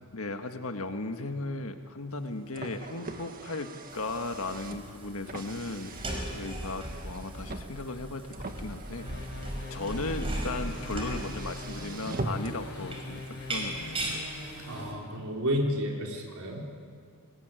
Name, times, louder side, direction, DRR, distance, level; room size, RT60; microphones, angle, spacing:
voice 1, 0.1-6.0 6.2-9.1 9.7-14.3, left 2 dB, 75° left, 6 dB, 1.7 m, -36 dB
Car, 2.1-12.7, right 2 dB, 40° right, 1.8 m, -42 dB
sound 1, 3.9-14.9, right 1 dB, 25° right, 5.2 m, -38 dB
sound 2, 9.0-14.8, left 2 dB, 50° left, 6.6 m, -42 dB
voice 2, 14.7-16.7, equal, 85° right, 0 dB, 3.7 m, -31 dB
26.5 x 20.0 x 9.1 m, 2.2 s
head